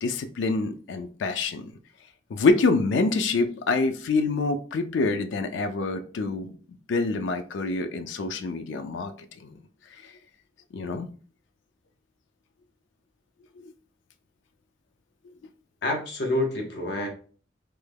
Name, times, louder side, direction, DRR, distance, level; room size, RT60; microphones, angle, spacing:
voice 1, 0.0-1.7 2.3-6.5 6.9-9.1 9.4-9.6 10.0-10.1 10.7-11.1 13.6-13.7, left 3 dB, 90° left, 8 dB, 0.4 m, -26 dB
voice 2, 15.8-17.1, left 1 dB, 70° left, 1 dB, 0.8 m, -27 dB
3.3 x 2.1 x 3.3 m, 0.41 s
head